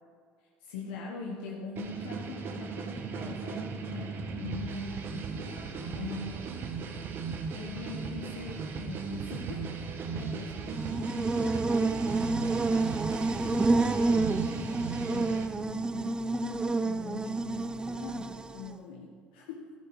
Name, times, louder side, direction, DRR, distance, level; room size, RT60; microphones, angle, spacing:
voice 1, 0.6-6.8 7.5-9.7 10.1-12.7 13.2-14.2 14.5-19.7, left 4 dB, 85° left, -2 dB, 1.3 m, -42 dB
sound 1, 1.8-15.5, right 5 dB, 55° right, 1.4 m, -37 dB
Buzz, 10.6-18.8, right 3 dB, 20° right, 0.5 m, -29 dB
12.0 x 11.0 x 4.8 m, 2.2 s
hypercardioid pair, 75°, 5 cm